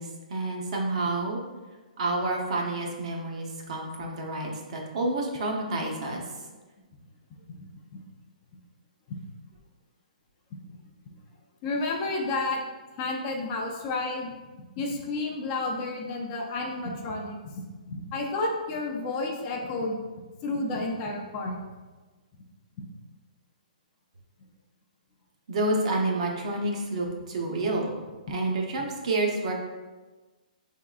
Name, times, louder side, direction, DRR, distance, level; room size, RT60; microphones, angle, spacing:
voice 1, 0.0-1.4 2.0-6.2 25.5-27.9 28.3-29.5, right 2 dB, 50° right, 0 dB, 0.7 m, -29 dB
voice 2, 11.6-12.6 13.0-14.3 14.8-20.0 20.4-21.6, left 2 dB, 25° left, 0 dB, 0.4 m, -31 dB
4.5 x 3.6 x 2.4 m, 1.3 s
hypercardioid pair, 165°, 4 cm